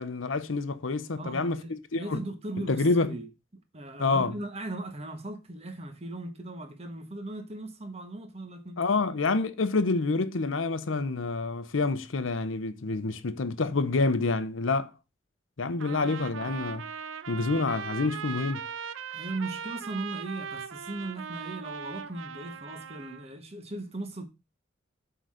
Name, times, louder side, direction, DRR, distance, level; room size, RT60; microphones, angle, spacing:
voice 1, 0.0-2.2 2.6-3.1 4.0-4.3 8.8-14.9 15.6-16.8 17.3-18.6, left 3 dB, 80° left, 0.8 m, -28 dB
voice 2, 1.2-3.3 3.7-8.8 15.8-16.1 19.1-24.2, right 2 dB, 30° right, 1.2 m, -38 dB
Trumpet, 15.8-23.3, right 7 dB, 85° right, 0.6 m, -39 dB
7.9 x 4.0 x 6.3 m
head